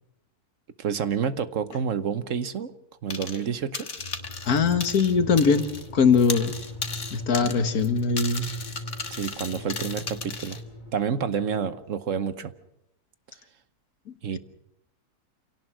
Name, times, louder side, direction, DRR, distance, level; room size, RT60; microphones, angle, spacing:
voice 1, 0.8-2.7 3.0-3.9 9.1-10.6 10.9-12.5 14.2-14.4, right 7 dB, 60° right, 13 dB, 1.3 m, -29 dB
sound 1, 3.1-3.5 3.7-5.9 6.1-10.6, left 4 dB, 50° left, 2.0 m, -36 dB
sound 2, 4.0-11.8, left 1 dB, 30° left, 1.9 m, -40 dB
voice 2, 4.5-5.7 5.9-6.6 7.1-8.5, left 5 dB, 75° left, 10 dB, 1.9 m, -21 dB
27.5 x 18.0 x 6.1 m, 0.81 s
omnidirectional pair, 1.6 m